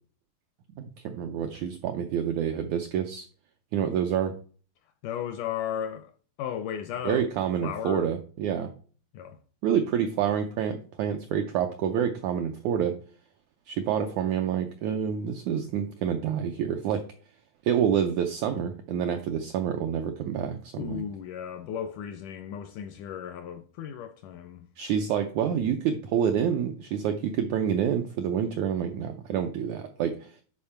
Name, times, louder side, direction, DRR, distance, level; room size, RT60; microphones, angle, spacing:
voice 1, 0.8-3.3 3.7-4.3 7.0-8.7 9.6-13.0 13.7-17.1 17.6-21.0 24.8-30.3, right 8 dB, 90° right, 1.7 m, -28 dB
voice 2, 4.8-6.1 6.4-7.3 7.6-8.1 9.1-9.4 20.8-24.7, left 9 dB, 80° left, 1.8 m, -35 dB
11.0 x 4.4 x 4.4 m
omnidirectional pair, 4.2 m